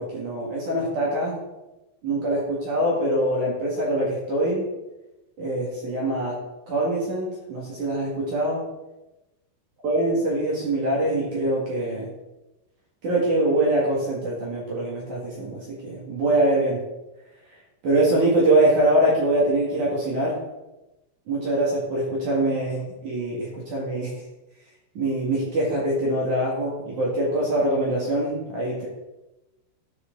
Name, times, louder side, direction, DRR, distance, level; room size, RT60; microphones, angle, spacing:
voice 1, 0.0-1.4 2.0-4.6 5.4-6.4 6.7-8.6 9.8-12.1 13.0-16.8 17.8-20.4 21.3-24.2 24.9-28.9, right 1 dB, 50° right, -5 dB, 2.7 m, -24 dB
13.0 x 6.3 x 3.9 m, 0.99 s
omnidirectional pair, 5.7 m